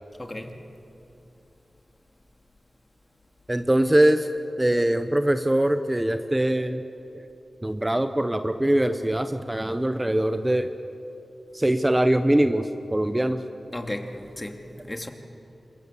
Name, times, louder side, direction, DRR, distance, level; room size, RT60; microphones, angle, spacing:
voice 1, 0.2-0.6 13.7-15.1, left 1 dB, 25° left, 2.3 m, -35 dB
voice 2, 3.5-4.3 4.6-6.8 7.6-10.7 11.5-13.4, right 1 dB, 15° right, 1.0 m, -22 dB
26.0 x 21.5 x 7.3 m
cardioid pair, 45°, 0 cm